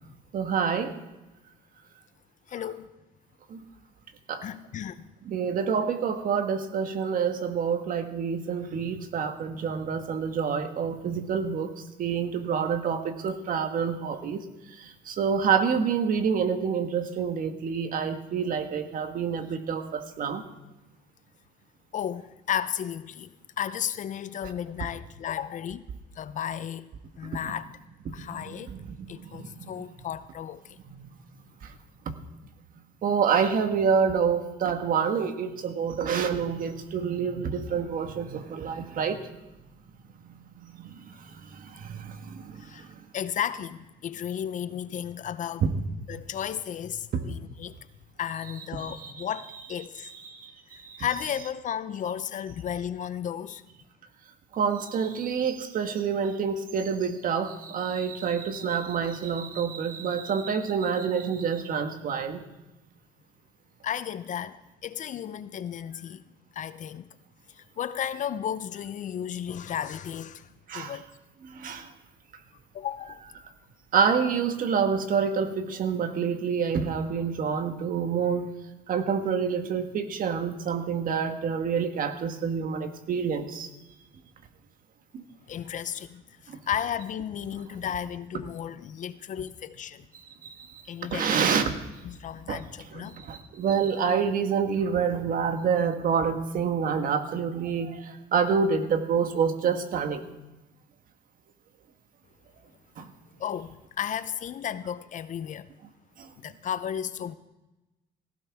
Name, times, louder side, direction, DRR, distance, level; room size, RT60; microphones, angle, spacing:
voice 1, 0.3-0.9 3.5-3.6 4.3-4.4 5.3-11.7 12.0-14.4 15.1-20.4 28.1-28.2 28.7-28.8 29.4-29.5 33.0-39.2 41.9-42.1 45.6-45.7 48.7-49.3 50.0-50.5 54.6-62.4 70.7-71.0 71.6-71.8 73.9-78.5 78.9-83.7 91.1-91.7 92.5-92.6 92.9-97.9 98.3-100.2 103.0-103.1, right 6 dB, 55° right, 1.5 m, -27 dB
voice 2, 2.5-2.9 4.4-5.1 21.9-25.8 26.2-26.9 27.2-27.7 28.1-28.7 29.1-30.8 42.6-42.9 43.1-45.7 46.1-47.8 48.2-50.1 50.7-53.6 63.8-64.6 64.8-66.2 66.5-67.1 67.5-71.1 72.7-73.2 85.5-90.1 90.9-91.5 92.0-93.2 103.4-105.7 106.4-107.3, left 9 dB, 50° left, 0.7 m, -34 dB
17.0 x 15.5 x 3.6 m
cardioid pair, 110°, 17 cm